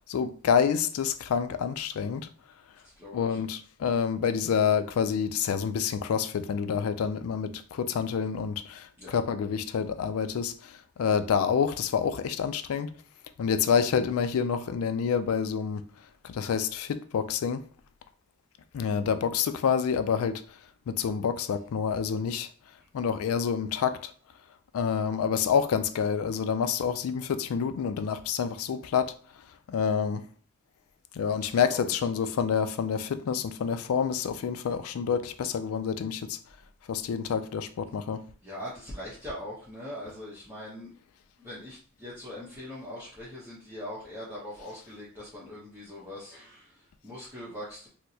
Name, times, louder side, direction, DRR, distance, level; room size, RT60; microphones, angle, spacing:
voice 1, 0.1-2.3 3.1-12.9 13.4-15.9 16.2-17.6 18.7-20.4 20.9-22.5 22.9-24.1 24.7-29.2 29.7-30.3 31.1-36.4 36.9-38.2, left 7 dB, 75° left, 0.3 m, -28 dB
voice 2, 2.8-3.4 9.0-9.2 31.4-31.9 38.4-41.0 41.4-47.9, left 1 dB, 10° right, 0.8 m, -42 dB
4.4 x 2.1 x 2.7 m
head